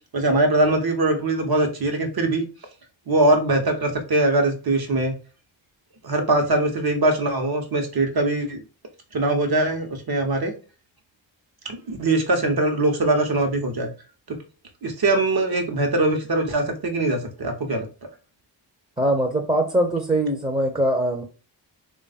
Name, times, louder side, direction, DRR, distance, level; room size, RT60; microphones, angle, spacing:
voice 1, 0.1-2.5 3.1-5.1 6.0-8.6 9.1-10.5 11.7-13.9 14.3-14.4 14.8-17.9, right 2 dB, 50° right, 4 dB, 1.1 m, -22 dB
voice 2, 19.0-21.2, right 1 dB, 10° right, 3 dB, 0.8 m, -22 dB
3.3 x 2.5 x 4.1 m, 0.35 s
cardioid pair, 45°, 46 cm